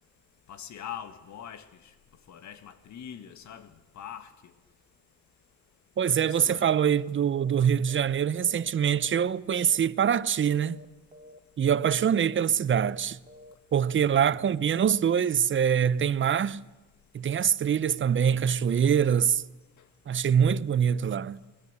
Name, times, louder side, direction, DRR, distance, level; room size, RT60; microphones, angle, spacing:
voice 1, 0.5-1.9 2.3-4.5 6.2-6.7 18.7-19.2 19.8-19.9, left 9 dB, 70° left, 2.0 m, -43 dB
voice 2, 6.0-10.8 11.6-13.2 13.7-16.6 17.1-19.4 20.1-21.4, right 8 dB, 40° right, 0.8 m, -24 dB
sound 1, 7.3-7.6 7.9-8.2 8.4-9.8 10.0-10.3 10.6-10.9 11.1-11.4 11.6-11.9 12.2-12.5 12.7-13.0 13.3-13.5 13.8-14.1, left 1 dB, 25° right, 2.1 m, -50 dB
22.5 x 19.5 x 8.3 m
cardioid pair, 90°, 30 cm